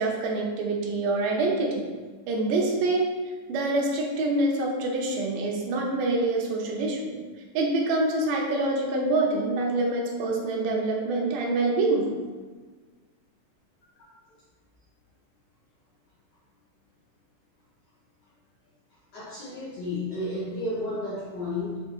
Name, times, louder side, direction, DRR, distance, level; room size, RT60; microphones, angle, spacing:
voice 1, 0.0-1.9 2.3-3.1 3.5-7.2 7.5-12.1, right 2 dB, 85° right, -1 dB, 2.3 m, -26 dB
voice 2, 19.1-21.8, left 2 dB, 70° left, -8 dB, 1.6 m, -32 dB
6.8 x 2.6 x 2.7 m, 1.4 s
omnidirectional pair, 3.9 m